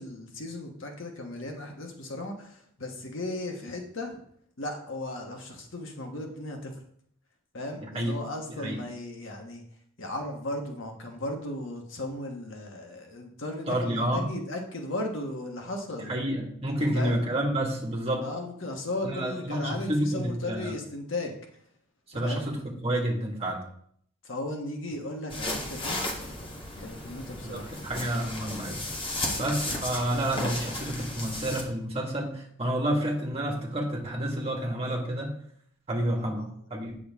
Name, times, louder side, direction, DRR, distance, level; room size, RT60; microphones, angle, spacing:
voice 1, 0.0-4.2 4.6-6.7 7.5-9.6 10.0-16.1 16.9-17.2 18.2-21.3 22.1-22.5 24.2-26.0 26.8-27.7 29.2-29.5 36.2-36.5, left 1 dB, 70° left, 2 dB, 1.3 m, -36 dB
voice 2, 13.7-14.2 16.1-18.3 19.0-20.7 22.1-23.6 27.4-28.8 29.4-35.3 35.9-37.0, right 1 dB, 30° right, -1 dB, 1.7 m, -29 dB
sound 1, 25.3-31.6, left 1 dB, 25° left, 1.2 m, -34 dB
8.6 x 6.3 x 3.5 m, 0.65 s
head